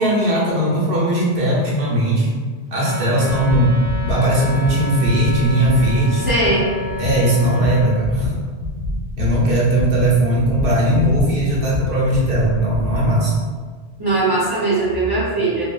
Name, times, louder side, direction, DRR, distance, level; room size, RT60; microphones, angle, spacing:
voice 1, 0.0-2.3 2.7-6.3 7.0-8.3 9.2-13.3, right 1 dB, 85° right, -6 dB, 1.0 m, -18 dB
Wind instrument woodwind instrument, 2.7-8.0, left 1 dB, 30° left, 0.5 m, -29 dB
sound 1, 3.3-13.2, left 2 dB, 65° left, 0.8 m, -26 dB
voice 2, 6.3-6.7 14.0-15.6, right 2 dB, 35° right, -8 dB, 0.4 m, -19 dB
2.7 x 2.5 x 2.3 m, 1.5 s
omnidirectional pair, 1.1 m